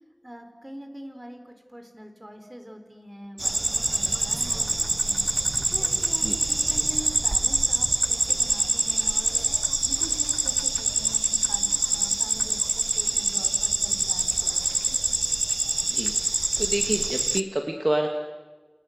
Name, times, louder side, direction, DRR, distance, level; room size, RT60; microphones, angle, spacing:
voice 1, 0.2-5.2 5.7-9.5 9.8-12.6 12.9-15.0, equal, 30° right, 6 dB, 4.3 m, -44 dB
sound 1, 3.4-17.4, right 2 dB, 70° right, 0.8 m, -25 dB
voice 2, 15.9-18.1, right 1 dB, 50° right, 3 dB, 2.3 m, -28 dB
30.0 x 29.0 x 6.7 m, 1.3 s
wide cardioid pair, 40°, 0 cm